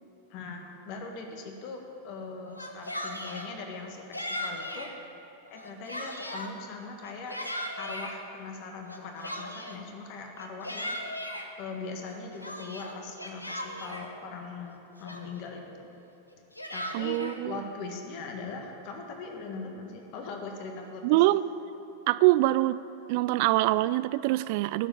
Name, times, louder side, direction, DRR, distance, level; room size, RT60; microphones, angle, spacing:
voice 1, 0.3-4.9 5.5-7.3 7.8-11.0 11.6-15.9 16.7-17.2 17.4-21.2, left 4 dB, 45° left, 3 dB, 1.7 m, -40 dB
Yell, 2.5-3.5 4.1-4.9 5.5-6.5 7.0-8.1 8.9-9.8 10.4-11.5 12.0-14.1 14.7-14.8 15.0-15.5 16.3-17.4, equal, 85° left, 1.1 m, -37 dB
voice 2, 16.9-17.6 21.0-21.5 22.1-22.8 23.1-24.9, right 17 dB, 45° right, 16 dB, 0.3 m, -24 dB
17.5 x 7.4 x 8.8 m, 3.0 s
figure-of-eight pair, 90°, 0 cm